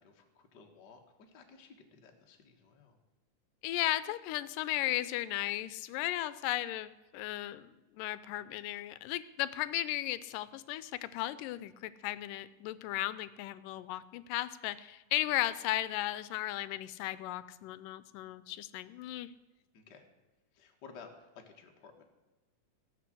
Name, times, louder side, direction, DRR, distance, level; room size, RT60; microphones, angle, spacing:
voice 1, 0.0-3.0 19.7-20.0 20.5-22.0, left 5 dB, 40° left, 2 dB, 1.7 m, -55 dB
voice 2, 3.6-19.3, left 15 dB, 85° left, 16 dB, 2.3 m, -35 dB
16.5 x 7.7 x 7.7 m, 1.2 s
omnidirectional pair, 3.8 m